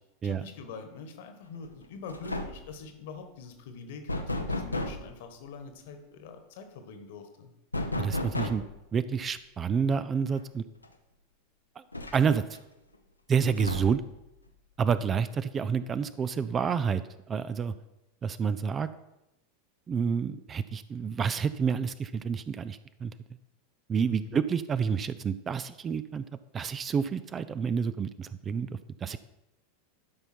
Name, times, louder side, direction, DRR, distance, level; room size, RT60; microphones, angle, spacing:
voice 1, 0.2-7.5 24.1-24.4, left 5 dB, 55° left, 7 dB, 1.4 m, -44 dB
sound 1, 1.6-1.8 2.1-2.7 4.1-5.1 7.7-8.8 10.3-10.4 10.8-10.9 11.9-12.6 13.5-14.1, left 1 dB, 85° left, 0.8 m, -33 dB
voice 2, 8.0-8.6 8.9-10.6 11.8-11.9 12.1-12.4 13.3-14.0 14.8-17.0 17.3-17.7 18.2-18.9 19.9-23.1 23.9-26.2 26.5-28.7 29.0-29.2, right 6 dB, 25° right, 14 dB, 0.4 m, -29 dB
12.0 x 5.6 x 4.4 m, 0.92 s
figure-of-eight pair, 85°, 0 cm